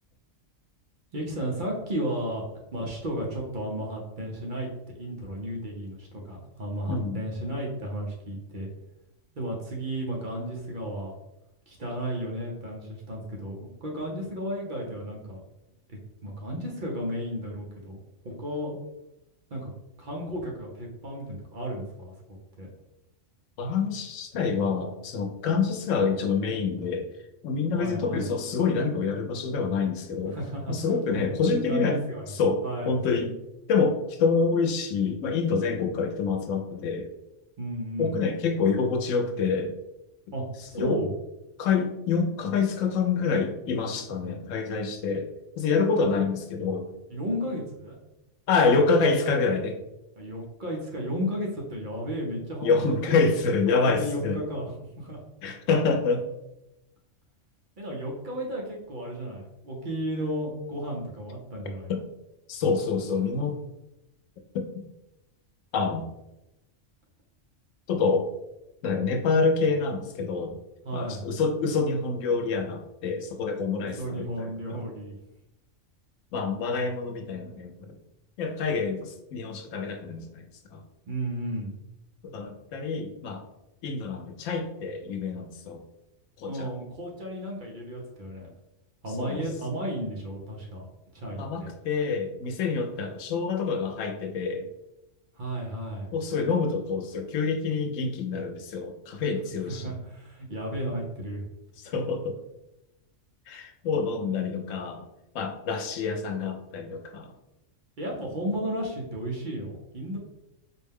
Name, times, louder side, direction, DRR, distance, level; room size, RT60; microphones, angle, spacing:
voice 1, 1.1-2.4 2.7-4.7 5.0-8.7 9.3-11.1 11.7-15.4 15.9-18.0 18.2-18.7 19.5-19.7 20.0-22.1 22.6-22.7 27.7-28.3 30.3-30.7 31.1-32.3 32.6-32.9 37.6-38.2 40.3-41.1 46.0-46.1 47.1-48.0 50.2-53.2 53.9-55.2 57.8-61.9 70.8-71.2 73.8-75.1 81.1-81.7 86.5-88.5 89.0-90.9 91.1-91.7 95.3-96.1 99.7-101.4 108.0-110.2, equal, 45° right, -2 dB, 0.8 m, -33 dB
voice 2, 6.9-7.2 23.6-27.1 27.4-30.4 30.7-32.0 32.3-33.3 33.7-37.1 38.0-39.8 40.7-41.0 41.6-45.3 45.6-46.9 48.5-49.8 52.6-54.4 55.4-56.2 61.9-62.0 62.5-63.6 64.5-64.8 65.7-66.1 67.9-68.3 68.8-70.6 70.9-74.8 76.3-78.0 78.4-80.8 82.2-83.4 83.8-85.8 86.4-86.7 89.2-89.4 91.4-94.7 96.1-99.9 101.8-102.4 103.5-105.0 105.3-107.3, left 4 dB, 85° left, 5 dB, 1.0 m, -27 dB
4.2 x 2.2 x 3.4 m, 0.91 s
omnidirectional pair, 1.3 m